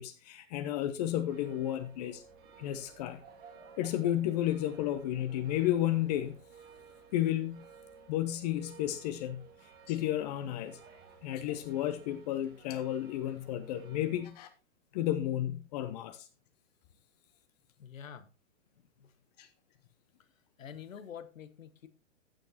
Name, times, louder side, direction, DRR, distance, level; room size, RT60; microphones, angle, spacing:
voice 1, 0.0-2.2 2.6-3.2 3.8-6.4 7.1-7.7 8.1-9.4 9.9-10.8 11.2-14.5 14.9-16.3 19.4-19.5, left 12 dB, 30° left, 0.6 m, -32 dB
sound 1, 1.1-14.3, right 5 dB, 25° right, 1.7 m, -55 dB
voice 2, 17.8-18.3 19.0-19.1 20.6-21.9, left 8 dB, 80° left, 1.1 m, -47 dB
15.0 x 6.4 x 2.8 m
hypercardioid pair, 130°, 39 cm